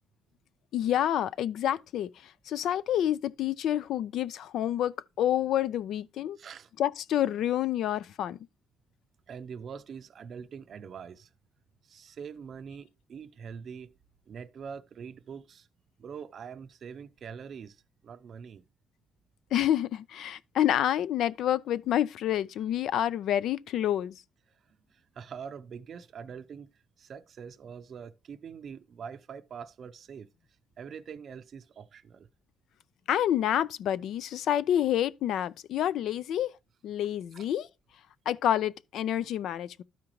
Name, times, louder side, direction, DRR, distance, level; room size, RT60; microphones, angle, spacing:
voice 1, 0.7-6.4 6.8-8.4 19.5-24.2 33.1-36.5 36.8-37.7 38.3-39.8, left 11 dB, 80° left, 0.4 m, -28 dB
voice 2, 6.4-6.7 9.3-11.3 11.9-13.9 14.3-15.7 16.0-18.6 24.9-26.7 27.0-30.3 30.8-32.3 37.3-37.5, right 6 dB, 50° right, 0.5 m, -44 dB
12.5 x 5.0 x 3.0 m
cardioid pair, 130°, 0 cm